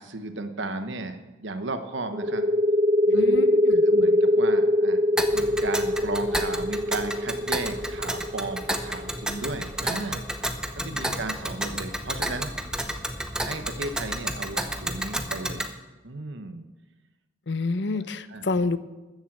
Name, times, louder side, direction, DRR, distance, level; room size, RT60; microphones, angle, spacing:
voice 1, 0.0-2.4 3.1-3.4 3.7-5.0 5.3-10.2 10.8-12.5 13.4-15.7 16.0-16.6 17.9-18.0 18.3-18.5, right 2 dB, 70° right, 8 dB, 1.0 m, -35 dB
sound 1, 2.1-9.5, left 1 dB, 25° right, 0.4 m, -22 dB
voice 2, 3.1-3.8 10.8-11.2 17.5-18.8, left 3 dB, 65° left, 13 dB, 0.7 m, -29 dB
Tick, 5.2-15.7, right 1 dB, 5° right, 0.8 m, -31 dB
13.5 x 7.4 x 7.4 m, 1.1 s
head